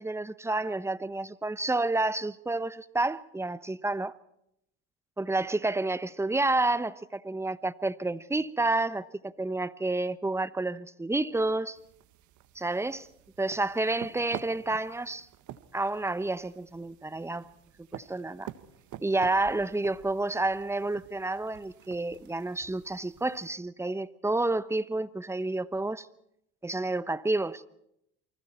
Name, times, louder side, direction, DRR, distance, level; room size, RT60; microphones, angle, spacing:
voice 1, 0.0-4.2 5.2-11.8 12.5-13.1 13.4-15.3 15.7-17.5 17.9-18.5 19.0-26.1 26.6-27.6, right 2 dB, 10° right, 1.0 m, -30 dB
sound 1, 11.7-23.6, right 12 dB, 60° right, 1.5 m, -48 dB
29.5 x 24.0 x 4.4 m
supercardioid pair, 90°, 33 cm